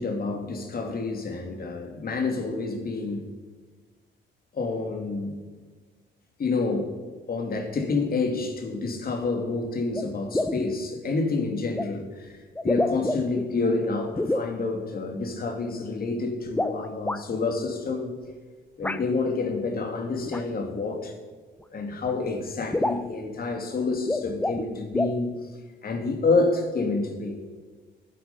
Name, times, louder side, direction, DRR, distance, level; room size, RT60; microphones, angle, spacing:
voice 1, 0.0-3.3 4.5-5.4 6.4-6.9 7.3-12.4 12.6-18.1 18.8-21.1 21.7-25.5 25.8-27.4, left 3 dB, 50° left, 3 dB, 2.6 m, -28 dB
sound 1, 9.2-9.3 9.9-10.0 10.3-10.7 11.7-11.9 12.5-13.5 14.2-14.5 16.5-17.2 18.8-19.0 20.3-20.4 21.6-21.7 22.1-22.2 22.4-22.5 22.7-23.1 23.9-24.7 24.9-25.2, left 1 dB, 5° left, 0.6 m, -27 dB
12.5 x 9.3 x 5.5 m, 1.4 s
cardioid pair, 90°, 20 cm